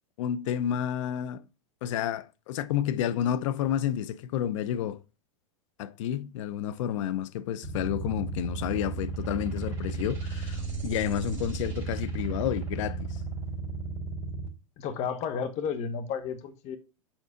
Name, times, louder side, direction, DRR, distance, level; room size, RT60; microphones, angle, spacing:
voice 1, 0.2-1.5 1.8-5.0 5.8-13.1, left 10 dB, 60° left, 0.7 m, -30 dB
sound 1, 7.6-14.5, right 4 dB, 15° right, 2.8 m, -34 dB
voice 2, 14.8-16.8, left 6 dB, 40° left, 1.3 m, -32 dB
7.2 x 4.0 x 5.0 m
hypercardioid pair, 125°, 18 cm